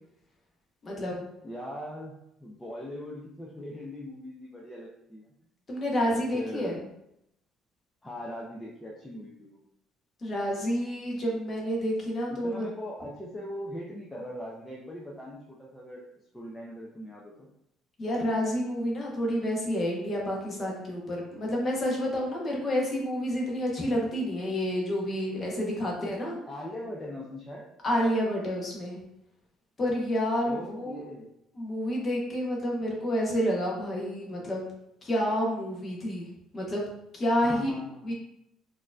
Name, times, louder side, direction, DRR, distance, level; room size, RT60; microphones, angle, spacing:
voice 1, 0.8-1.2 5.7-6.8 10.2-12.7 18.0-26.4 27.8-29.0 29.8-31.0 31.5-34.7 35.0-36.2 36.5-36.9 37.1-37.7 38.0-38.1, equal, 25° left, -2 dB, 0.7 m, -29 dB
voice 2, 1.4-2.1 2.4-5.3 6.1-6.8 8.0-9.6 12.3-16.0 16.3-17.5 26.5-27.6 30.4-31.3 37.4-38.1, left 1 dB, 10° left, -4 dB, 0.4 m, -40 dB
4.3 x 2.5 x 2.2 m, 0.79 s
cardioid pair, 175°, 0 cm